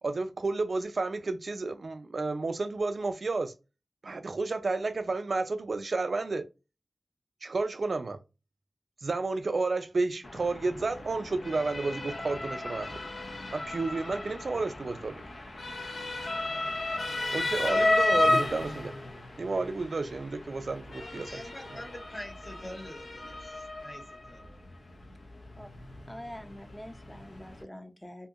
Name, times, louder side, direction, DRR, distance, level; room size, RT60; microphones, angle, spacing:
voice 1, 0.0-3.5 4.0-6.5 7.4-8.2 9.0-13.0 13.5-15.2 17.3-18.9 19.4-21.4 21.7-21.8, right 3 dB, 70° right, 0.3 m, -31 dB
Motor vehicle (road) / Siren, 10.2-27.6, left 2 dB, 75° left, 0.5 m, -33 dB
voice 2, 21.2-24.6, left 1 dB, 35° left, 0.9 m, -45 dB
voice 3, 26.1-28.3, left 1 dB, 10° left, 0.5 m, -45 dB
2.7 x 2.6 x 2.3 m
wide cardioid pair, 55°, 0 cm